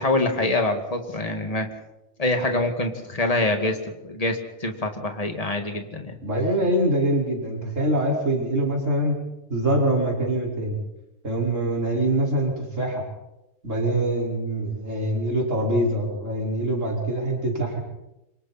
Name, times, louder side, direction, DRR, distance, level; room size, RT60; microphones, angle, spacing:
voice 1, 0.0-1.7 2.2-6.2, left 2 dB, 30° left, 4 dB, 2.3 m, -25 dB
voice 2, 6.2-9.2 9.5-10.8 11.2-13.0 13.6-17.8, right 1 dB, 80° right, -2 dB, 5.5 m, -24 dB
28.0 x 25.0 x 4.3 m, 0.93 s
omnidirectional pair, 1.3 m